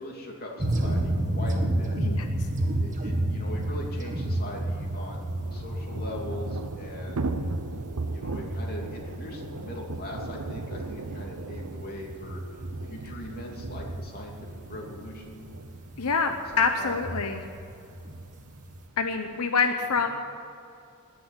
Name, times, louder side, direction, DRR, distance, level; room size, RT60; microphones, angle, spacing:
voice 1, 0.0-2.0 2.8-7.3 8.0-12.4 12.9-15.4 16.3-16.9 19.9-20.0, left 1 dB, 45° left, -1 dB, 3.0 m, -40 dB
sound 1, 0.6-18.8, right 1 dB, 35° right, 1.7 m, -32 dB
Thunder / Rain, 2.9-3.0 3.2-3.3 3.6-19.5, right 3 dB, 80° right, 0.8 m, -39 dB
voice 2, 16.0-16.3 16.6-17.4 19.0-20.1, left 5 dB, 80° left, 5 dB, 0.9 m, -25 dB
20.5 x 7.0 x 8.9 m, 2.6 s
head